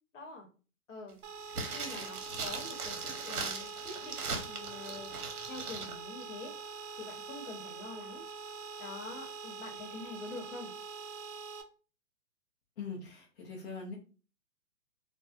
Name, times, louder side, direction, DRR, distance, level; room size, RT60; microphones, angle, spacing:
voice 1, 0.1-0.5 0.9-1.2 1.6-4.2 4.5-5.1 5.4-6.5 7.0-8.2 8.8-10.7, left 3 dB, 55° left, 2 dB, 1.0 m, -45 dB
sound 1, 1.2-11.6, right 5 dB, 50° right, 0.5 m, -44 dB
sound 2, 1.5-5.9 6.2-6.3, right 4 dB, 75° right, 0.8 m, -39 dB
voice 2, 12.8-14.0, left 4 dB, 40° left, -2 dB, 0.6 m, -42 dB
2.5 x 2.1 x 2.5 m, 0.36 s
hypercardioid pair, 145°, 45 cm